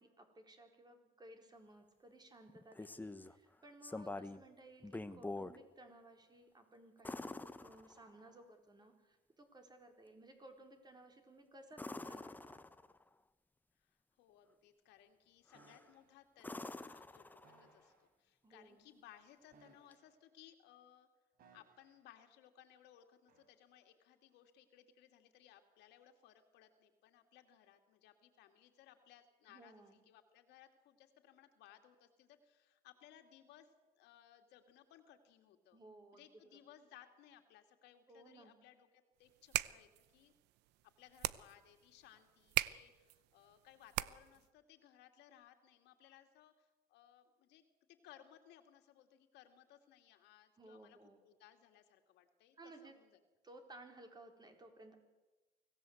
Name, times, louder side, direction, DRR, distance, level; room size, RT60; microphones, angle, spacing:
voice 1, 0.0-12.6 18.4-18.9 29.5-30.0 35.7-36.6 38.1-38.6 50.6-51.2 52.6-53.0 53.4-54.9, right 2 dB, 25° right, 5 dB, 4.1 m, -59 dB
sound 1, 2.5-3.3 3.8-4.5 4.8-5.6 7.0-8.3 11.7-13.0 15.5-15.9 16.4-17.8 19.9-20.0, left 2 dB, 10° left, 1.0 m, -46 dB
voice 2, 13.8-21.1 21.5-35.8 36.1-40.3 41.0-47.6 47.9-53.2, left 11 dB, 85° left, 6 dB, 2.6 m, -63 dB
sound 2, 15.5-16.2 17.4-18.1 19.5-20.4 21.4-22.1 23.3-23.5, right 4 dB, 60° right, 4.0 m, -68 dB
sound 3, 39.2-44.5, right 17 dB, 90° right, 0.7 m, -41 dB
24.5 x 16.5 x 8.0 m, 1.1 s
cardioid pair, 110°, 17 cm